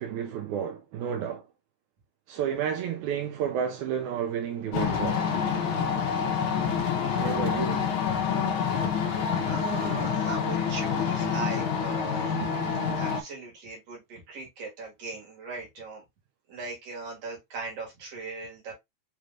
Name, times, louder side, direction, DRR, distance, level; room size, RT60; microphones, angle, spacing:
voice 1, 0.0-1.5 2.3-5.4 7.2-7.8, right 8 dB, 85° right, 2.2 m, -31 dB
sound 1, 4.7-13.2, left 6 dB, 80° left, 1.1 m, -27 dB
voice 2, 9.4-12.5 12.9-16.0 16.5-18.7, right 3 dB, 60° right, 2.7 m, -39 dB
5.6 x 3.1 x 2.4 m
omnidirectional pair, 3.4 m